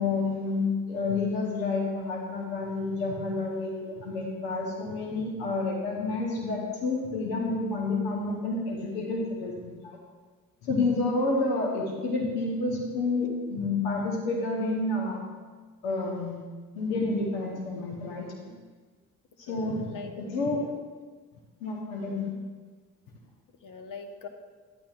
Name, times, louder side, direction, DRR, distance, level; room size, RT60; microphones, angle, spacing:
voice 1, 0.0-10.0 10.6-15.2 15.8-16.4 16.7-18.5 19.4-20.6 21.6-22.3, left 3 dB, 85° left, 0 dB, 1.0 m, -29 dB
voice 2, 19.5-20.1 20.5-20.7 23.6-24.3, left 5 dB, 60° left, 5 dB, 1.1 m, -43 dB
10.5 x 9.0 x 2.4 m, 1.4 s
hypercardioid pair, 45°, 36 cm